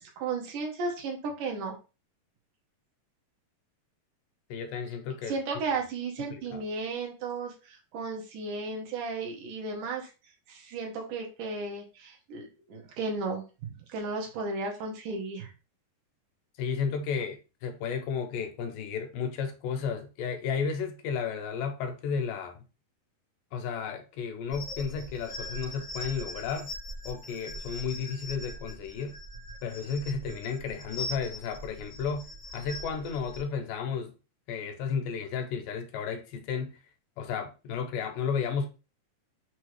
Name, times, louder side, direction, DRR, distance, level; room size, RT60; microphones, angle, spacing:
voice 1, 0.0-1.8 5.3-10.1 10.5-13.4 13.9-15.5, right 3 dB, 70° right, 2.5 m, -34 dB
voice 2, 4.5-5.4 6.5-6.6 16.6-22.6 23.5-26.7 27.1-29.2 29.6-32.3 32.5-34.1 34.5-36.7 37.2-38.7, left 6 dB, 80° left, 2.2 m, -33 dB
sound 1, 24.5-33.4, left 1 dB, 35° right, 1.2 m, -41 dB
6.2 x 2.7 x 3.1 m
omnidirectional pair, 3.9 m